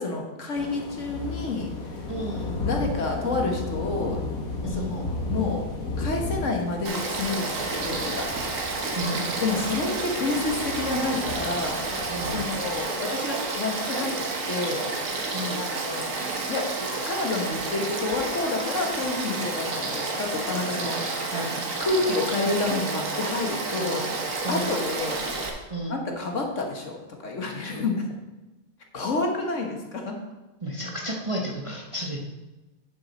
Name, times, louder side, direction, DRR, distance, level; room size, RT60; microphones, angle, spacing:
voice 1, 0.0-1.7 2.7-4.2 4.6-5.6 6.0-8.2 9.4-11.8 12.2-14.2 14.5-14.8 15.6-16.1 16.5-16.7 17.1-21.3 21.8-24.1 24.5-25.2 25.9-27.0 27.2-27.9 28.9-30.1, left 3 dB, 55° left, 2 dB, 1.7 m, -29 dB
sound 1, 0.5-12.8, left 3 dB, 70° left, 1.7 m, -34 dB
voice 2, 2.1-2.5 4.6-5.0 8.9-9.4 12.1-12.5 15.3-15.7 21.3-21.6 23.8-23.9 24.4-24.7 25.7-26.0 27.7-27.8 30.6-32.2, right 1 dB, 25° right, -1 dB, 1.0 m, -32 dB
Frog / Stream, 6.8-25.5, right 3 dB, 60° right, 1.6 m, -30 dB
10.0 x 6.9 x 4.2 m, 1.1 s
omnidirectional pair, 1.6 m